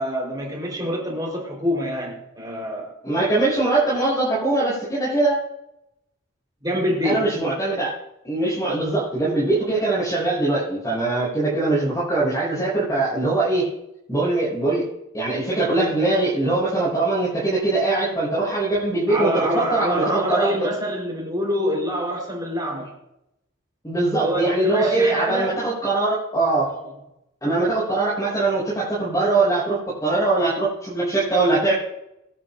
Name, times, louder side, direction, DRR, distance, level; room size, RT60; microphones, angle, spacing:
voice 1, 0.0-2.9 6.6-7.2 19.1-22.9 24.2-25.6 26.8-26.9, equal, 20° right, -2 dB, 4.3 m, -25 dB
voice 2, 3.0-5.4 7.0-7.9 8.2-13.7 14.1-14.9 15.1-20.7 23.8-26.8 27.4-31.7, right 2 dB, 15° left, -7 dB, 6.4 m, -22 dB
23.5 x 11.0 x 2.7 m, 0.84 s
head